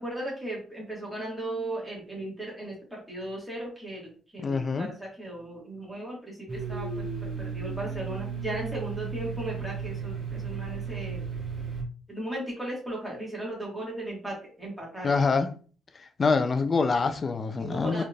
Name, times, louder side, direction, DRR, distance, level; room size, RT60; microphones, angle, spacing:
voice 1, 0.0-11.3 12.1-15.2 17.6-18.0, right 1 dB, ahead, 1.6 m, -37 dB
voice 2, 4.4-4.9 15.0-15.5 15.9-18.0, left 4 dB, 30° left, 0.4 m, -25 dB
Domestic sounds home sounds, 6.5-11.8, right 5 dB, 30° right, 1.7 m, -34 dB
4.1 x 3.3 x 2.4 m
cardioid pair, 135°, 0 cm